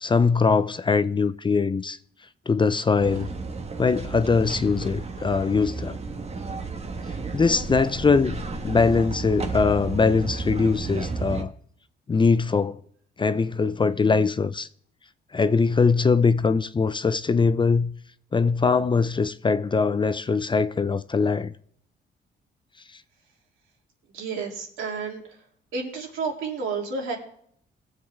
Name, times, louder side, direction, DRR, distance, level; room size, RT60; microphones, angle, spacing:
voice 1, 0.0-2.0 2.5-3.3 3.8-6.0 7.3-8.4 8.6-11.5 12.1-12.8 13.2-14.7 15.3-17.9 18.3-21.5, left 4 dB, 25° left, 0.5 m, -22 dB
sound 1, 3.0-11.4, right 4 dB, 30° right, 1.3 m, -32 dB
voice 2, 24.1-25.2 25.7-27.2, right 4 dB, 80° right, 3.1 m, -30 dB
20.5 x 7.5 x 3.5 m
cardioid pair, 90°, 20 cm